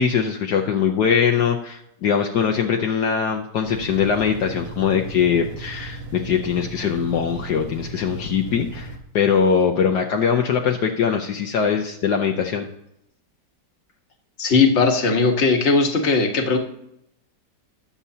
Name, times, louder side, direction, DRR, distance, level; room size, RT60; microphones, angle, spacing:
voice 1, 0.0-12.7, left 7 dB, 70° left, 3 dB, 1.4 m, -21 dB
sound 1, 3.6-9.0, right 2 dB, 85° right, 1.9 m, -36 dB
voice 2, 14.4-16.6, left 4 dB, 40° left, 3 dB, 1.5 m, -18 dB
20.0 x 7.1 x 2.8 m, 0.79 s
omnidirectional pair, 1.9 m